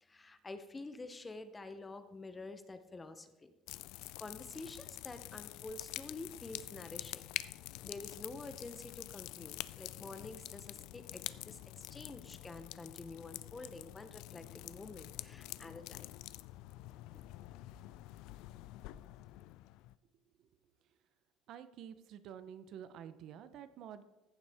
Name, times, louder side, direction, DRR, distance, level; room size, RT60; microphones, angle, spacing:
voice 1, 0.0-3.5 4.2-7.3 7.8-16.1 17.1-17.3, left 3 dB, 15° left, 10 dB, 0.6 m, -48 dB
sound 1, 3.7-19.9, left 17 dB, 75° left, 0.3 m, -47 dB
voice 2, 21.5-24.0, right 9 dB, 55° right, 12 dB, 0.6 m, -49 dB
14.5 x 7.1 x 3.4 m, 1.0 s
cardioid pair, 150°, 0 cm